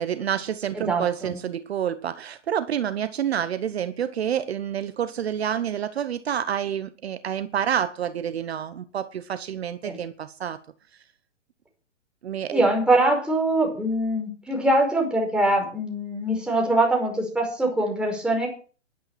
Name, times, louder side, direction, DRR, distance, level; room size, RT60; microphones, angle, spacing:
voice 1, 0.0-10.6 12.2-12.6, right 9 dB, 60° right, 1.1 m, -28 dB
voice 2, 0.9-1.4 9.8-10.0 12.5-18.5, right 1 dB, ahead, 5.1 m, -23 dB
11.5 x 10.5 x 7.3 m
figure-of-eight pair, 125°, 36 cm